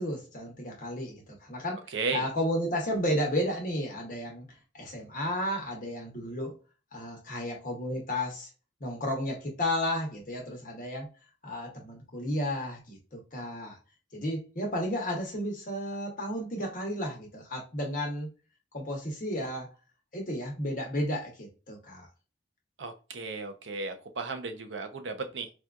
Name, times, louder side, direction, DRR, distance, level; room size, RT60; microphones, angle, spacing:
voice 1, 0.0-1.8 2.1-4.5 4.7-6.5 6.9-8.5 8.8-11.1 11.4-13.8 14.1-18.3 18.7-19.7 20.1-22.1, left 1 dB, 45° left, 0.9 m, -33 dB
voice 2, 1.9-2.2 22.8-25.5, right 4 dB, 90° right, 0.6 m, -34 dB
4.2 x 2.3 x 2.4 m
head